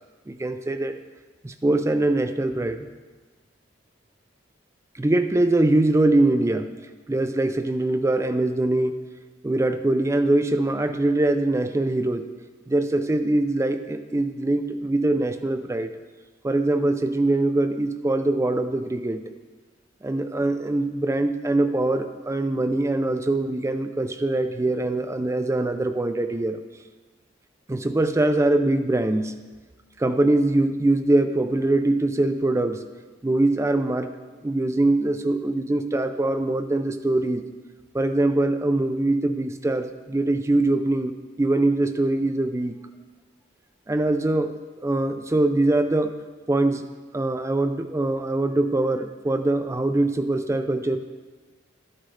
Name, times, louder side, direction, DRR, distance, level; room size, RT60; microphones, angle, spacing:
voice 1, 0.3-0.9 1.4-2.9 5.0-6.7 7.1-9.0 9.4-12.3 12.7-15.9 16.4-19.2 20.0-26.6 27.7-29.3 30.0-32.8 33.2-34.1 34.4-37.4 37.9-42.7 43.9-44.5 44.8-46.2 46.5-46.9 47.1-51.0, right 2 dB, 15° right, 8 dB, 0.4 m, -23 dB
12.0 x 9.9 x 3.2 m, 1.3 s
head